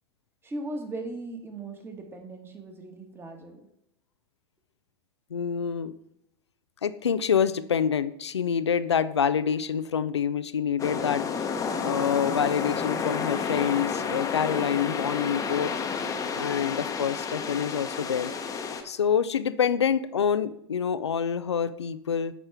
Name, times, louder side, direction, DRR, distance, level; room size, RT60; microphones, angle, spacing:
voice 1, 0.4-3.7, right 2 dB, 15° right, 4 dB, 1.5 m, -38 dB
voice 2, 5.3-5.9 6.8-11.2 11.8-15.8 16.3-18.3 18.8-22.3, left 7 dB, 85° left, 14 dB, 0.4 m, -26 dB
sound 1, 10.8-18.8, left 5 dB, 25° left, 0.9 m, -31 dB
10.0 x 4.3 x 3.5 m, 0.82 s
hypercardioid pair, 90°, 14 cm